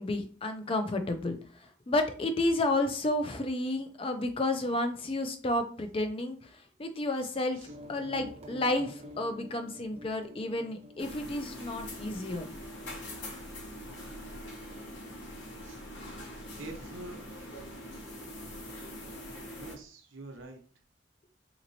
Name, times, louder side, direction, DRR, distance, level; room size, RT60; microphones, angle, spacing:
voice 1, 0.0-1.4 1.9-6.4 6.8-7.6 7.9-12.5, left 2 dB, 30° left, 7 dB, 0.4 m, -31 dB
sound 1, 7.7-13.1, left 1 dB, 30° right, 0.7 m, -49 dB
sound 2, 11.0-19.8, left 1 dB, 65° left, 1.0 m, -43 dB
voice 2, 16.6-17.2 19.6-20.6, right 2 dB, 75° right, 4 dB, 0.8 m, -45 dB
4.0 x 2.9 x 2.7 m, 0.41 s
head